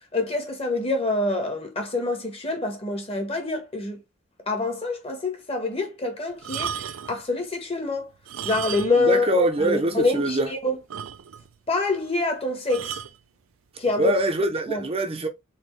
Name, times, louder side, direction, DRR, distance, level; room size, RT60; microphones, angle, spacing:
voice 1, 0.1-4.0 4.5-8.1 8.4-10.8 11.7-13.0 13.8-14.1 14.7-14.8, left 3 dB, 30° left, 1.3 m, -26 dB
sound 1, 6.4-7.2 8.2-9.2 9.4-9.5 10.1-10.2 10.4-10.5 10.9-11.5 12.7-13.2 14.0-14.2, right 9 dB, 75° right, 0.5 m, -34 dB
voice 2, 9.0-10.5 14.0-15.3, right 2 dB, 30° right, 0.7 m, -23 dB
4.3 x 3.8 x 3.2 m
head